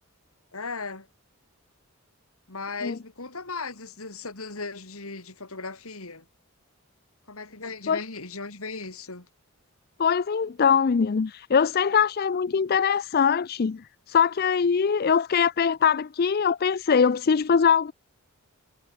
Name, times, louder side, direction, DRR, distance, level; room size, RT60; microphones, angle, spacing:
voice 1, 0.5-1.1 2.5-6.3 7.3-9.3, left 4 dB, 70° left, 3.6 m, -37 dB
voice 2, 10.0-17.9, left 6 dB, 45° left, 0.4 m, -22 dB
head